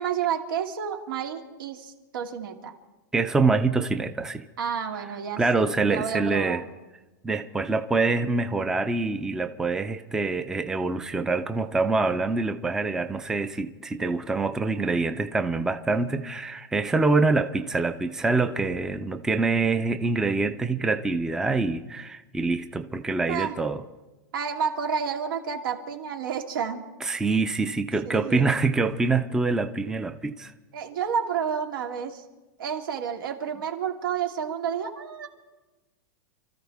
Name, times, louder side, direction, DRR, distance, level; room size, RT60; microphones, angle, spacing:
voice 1, 0.0-2.7 4.6-6.6 23.3-23.6 24.3-26.9 28.0-28.6 30.7-32.2 32.6-35.3, right 7 dB, 85° right, 2.4 m, -30 dB
voice 2, 3.1-4.4 5.4-6.6 7.2-23.8 27.0-30.5, right 3 dB, 5° right, 0.5 m, -25 dB
29.0 x 14.0 x 3.5 m
supercardioid pair, 160°, 11 cm